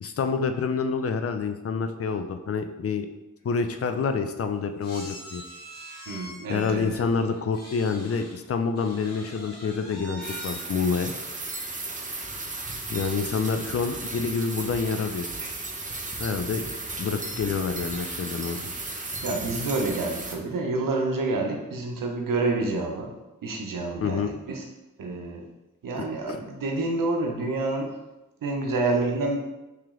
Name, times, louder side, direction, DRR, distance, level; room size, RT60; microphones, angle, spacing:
voice 1, 0.0-3.1 3.4-5.4 6.5-11.1 12.9-15.3 16.2-16.6 17.0-18.6 24.0-24.3 26.0-26.1, left 5 dB, 45° left, 8 dB, 0.4 m, -27 dB
sound 1, 3.4-3.5 3.7-3.9 4.8-8.4 8.8-10.6, equal, 85° left, 1.4 m, -44 dB
voice 2, 6.1-6.9 13.3-13.4 15.4-15.6 16.9-17.0 19.2-23.1 23.4-24.7 25.0-25.4 25.8-28.0 28.4-29.4, right 3 dB, 85° right, 2 dB, 0.7 m, -28 dB
sound 2, 10.2-20.3, right 2 dB, 25° right, 0.6 m, -35 dB
3.2 x 2.9 x 3.6 m, 0.99 s
cardioid pair, 45°, 32 cm